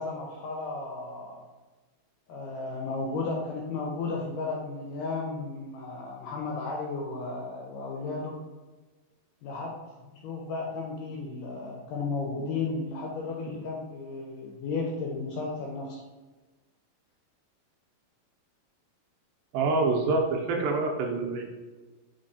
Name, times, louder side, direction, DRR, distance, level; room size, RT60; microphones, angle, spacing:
voice 1, 0.0-1.5 2.3-8.4 9.4-16.0, left 3 dB, 80° left, 0 dB, 1.9 m, -34 dB
voice 2, 19.5-21.4, right 3 dB, 80° right, 1 dB, 2.4 m, -26 dB
5.4 x 3.4 x 2.6 m, 1.2 s
omnidirectional pair, 4.3 m